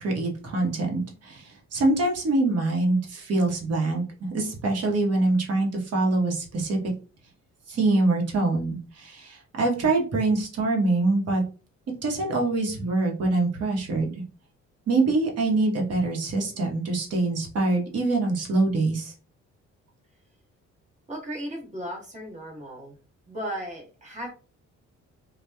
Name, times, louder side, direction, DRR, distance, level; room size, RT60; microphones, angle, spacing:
voice 1, 0.0-6.8 7.7-11.4 12.0-14.1 14.9-19.1, right 2 dB, 55° right, 0 dB, 1.0 m, -24 dB
voice 2, 21.1-22.9 23.3-24.3, equal, 25° right, -1 dB, 1.2 m, -35 dB
2.8 x 2.2 x 2.2 m, 0.36 s
cardioid pair, 90°, 30 cm